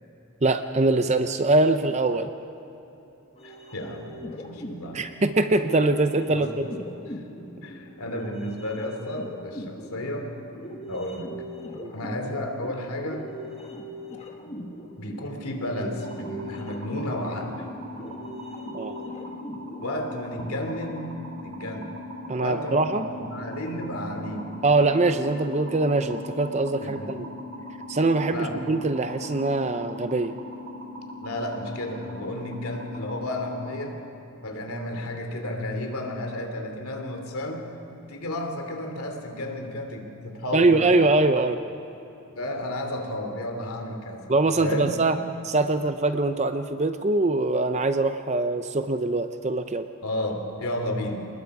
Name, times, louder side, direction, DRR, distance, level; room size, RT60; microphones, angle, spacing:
voice 1, 0.4-2.3 4.9-6.7 11.7-11.9 18.7-19.0 22.3-23.1 24.6-27.3 27.9-30.3 40.5-41.6 44.3-45.2 45.4-49.9, right 2 dB, 30° right, 9 dB, 0.6 m, -23 dB
voice 2, 3.4-5.1 6.3-6.6 7.6-10.3 10.9-11.3 11.9-13.3 15.0-17.7 19.8-21.1 21.4-21.9 22.4-24.5 26.8-27.3 28.3-28.6 31.2-34.0 34.4-37.7 38.1-41.0 42.3-44.3 44.6-45.0 50.0-51.3, left 1 dB, 80° left, 4 dB, 2.8 m, -32 dB
sound 1, 3.4-20.2, equal, 30° left, 1.4 m, -41 dB
sound 2, 16.0-33.9, left 1 dB, 65° right, 3.0 m, -40 dB
27.5 x 20.0 x 4.9 m, 3.0 s
head